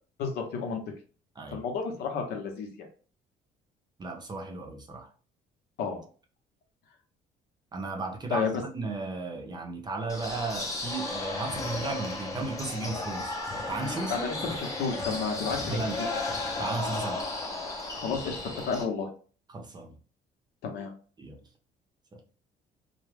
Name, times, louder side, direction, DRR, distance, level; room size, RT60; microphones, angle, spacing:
voice 1, 0.2-0.8 1.5-2.9 5.8-6.0 8.3-8.6 14.1-15.8 18.0-18.4 18.6-19.1 20.6-20.9, left 5 dB, 80° left, 0.8 m, -31 dB
voice 2, 4.0-5.1 7.7-13.3 13.7-14.3 15.7-16.0 16.6-17.3 19.5-19.9 21.2-21.4, right 3 dB, 25° right, 0.6 m, -35 dB
sound 1, 10.1-18.8, left 2 dB, 20° left, 0.6 m, -34 dB
2.3 x 2.1 x 3.2 m
cardioid pair, 110°, 17 cm